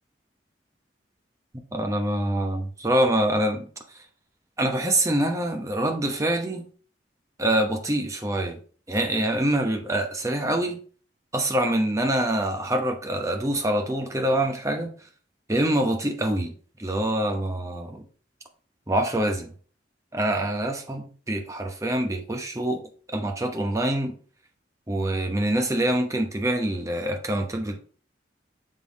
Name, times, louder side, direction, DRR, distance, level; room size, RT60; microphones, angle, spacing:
voice 1, 1.7-3.7 4.6-6.6 7.4-8.6 8.9-10.8 11.3-14.9 15.5-16.5 16.8-18.0 18.9-19.5 20.1-22.8 23.1-24.2 24.9-27.8, right 1 dB, 15° right, 4 dB, 0.9 m, -25 dB
6.9 x 3.8 x 4.0 m, 0.42 s
head